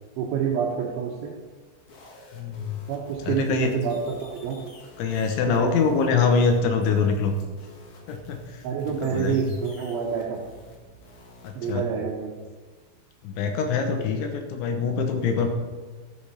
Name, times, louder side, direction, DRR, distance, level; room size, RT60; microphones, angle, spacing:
voice 1, 0.2-1.3 2.9-4.6 5.5-5.7 8.6-10.4 11.5-12.3, right 7 dB, 75° right, -2 dB, 3.3 m, -27 dB
sound 1, 1.8-11.7, left 1 dB, 55° left, 2.3 m, -50 dB
voice 2, 2.3-2.8 3.2-3.7 5.0-7.3 8.1-8.6 9.0-9.5 11.4-11.9 13.2-15.5, left 5 dB, 75° left, 5 dB, 3.1 m, -24 dB
13.5 x 7.0 x 5.6 m, 1.4 s
omnidirectional pair, 5.8 m